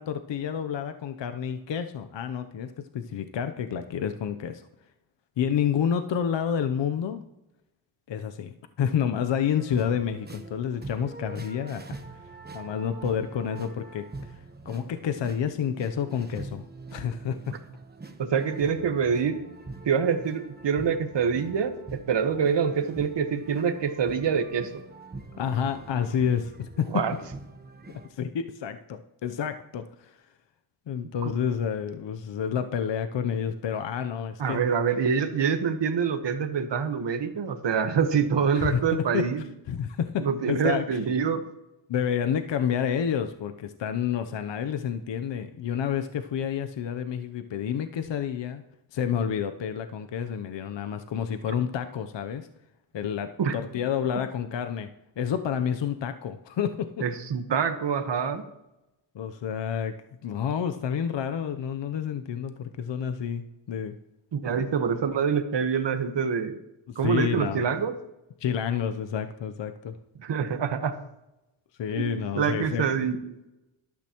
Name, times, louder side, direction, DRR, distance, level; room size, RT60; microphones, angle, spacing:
voice 1, 0.0-4.7 5.4-7.2 8.1-11.8 12.5-14.4 14.6-16.7 16.9-17.6 25.4-26.9 28.1-30.2 30.9-34.6 38.6-39.2 39.7-41.0 41.9-48.6 48.9-52.5 52.9-54.9 55.2-57.0 59.1-59.9 60.2-63.9 66.9-67.6 68.4-69.9 71.8-72.8, left 8 dB, 60° left, 8 dB, 0.8 m, -29 dB
sound 1, 9.5-28.1, right 3 dB, 20° right, 1.1 m, -44 dB
voice 2, 18.2-19.4 19.9-24.7 26.9-27.1 31.2-31.3 34.4-39.4 40.2-41.4 53.4-53.5 57.0-58.4 64.3-66.6 66.9-67.9 70.2-70.9 72.0-73.2, right 6 dB, 60° right, 8 dB, 1.3 m, -26 dB
12.5 x 12.0 x 3.0 m, 0.93 s
cardioid pair, 100°, 49 cm